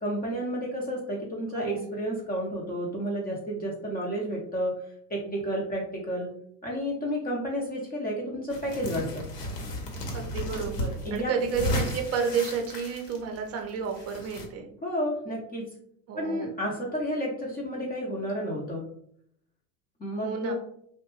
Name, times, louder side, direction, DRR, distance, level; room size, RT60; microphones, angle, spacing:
voice 1, 0.0-4.7 5.1-6.3 6.6-9.3 11.0-11.3 14.8-15.7 16.2-18.9 20.0-20.5, equal, 20° left, -2 dB, 0.6 m, -31 dB
voice 2, 1.5-1.9 10.1-14.7 16.1-16.5 20.2-20.5, right 6 dB, 30° right, 3 dB, 0.6 m, -31 dB
sound 1, 8.5-14.5, left 1 dB, 75° left, 1.0 m, -34 dB
2.6 x 2.1 x 3.0 m, 0.66 s
hypercardioid pair, 85°, 49 cm